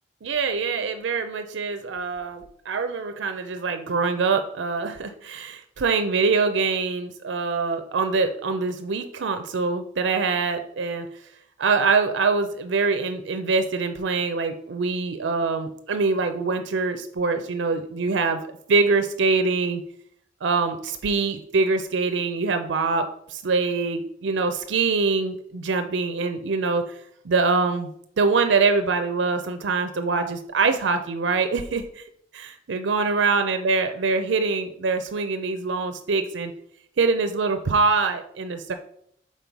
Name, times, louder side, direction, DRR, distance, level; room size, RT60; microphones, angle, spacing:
voice 1, 0.2-11.1 11.6-18.4 18.7-19.8 20.4-27.0 27.2-27.9 28.2-32.0 32.3-36.5 37.0-38.7, right 4 dB, 80° right, 8 dB, 0.5 m, -24 dB
5.4 x 4.2 x 4.6 m, 0.68 s
head